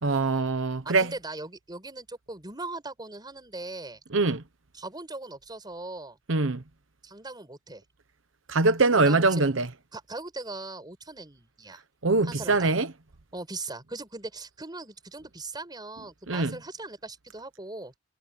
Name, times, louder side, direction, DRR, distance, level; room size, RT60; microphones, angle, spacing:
voice 1, 0.0-1.1 4.1-4.4 6.3-6.6 8.5-9.7 12.0-12.9 16.3-16.6, right 3 dB, 90° right, 1.1 m, -23 dB
voice 2, 0.8-4.0 4.7-6.2 7.0-7.8 8.9-9.5 9.9-11.8 12.2-12.7 13.3-17.9, right 2 dB, 20° right, 5.5 m, -39 dB
head